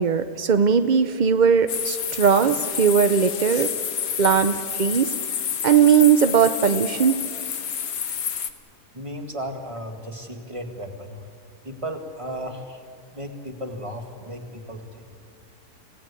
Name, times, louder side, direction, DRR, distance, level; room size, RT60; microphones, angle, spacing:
voice 1, 0.0-3.7 4.2-5.1 5.6-7.2, right 7 dB, 65° right, 10 dB, 0.4 m, -19 dB
sound 1, 1.7-8.5, left 8 dB, 85° left, 1.7 m, -29 dB
voice 2, 8.9-11.2 11.6-12.8 13.1-15.2, equal, 20° right, 4 dB, 1.8 m, -35 dB
27.5 x 17.0 x 8.4 m, 2.3 s
omnidirectional pair, 1.8 m